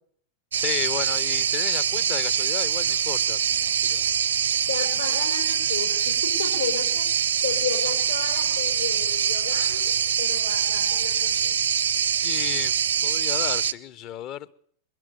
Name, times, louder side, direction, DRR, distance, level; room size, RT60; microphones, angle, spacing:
voice 1, 0.5-3.4 3.8-4.1 12.2-12.7 13.0-14.5, left 12 dB, 40° left, 0.8 m, -33 dB
sound 1, 0.5-13.7, right 8 dB, 70° right, 0.8 m, -24 dB
voice 2, 4.7-11.6, left 7 dB, 80° left, 4.5 m, -33 dB
21.5 x 16.5 x 7.9 m
figure-of-eight pair, 90°, 0 cm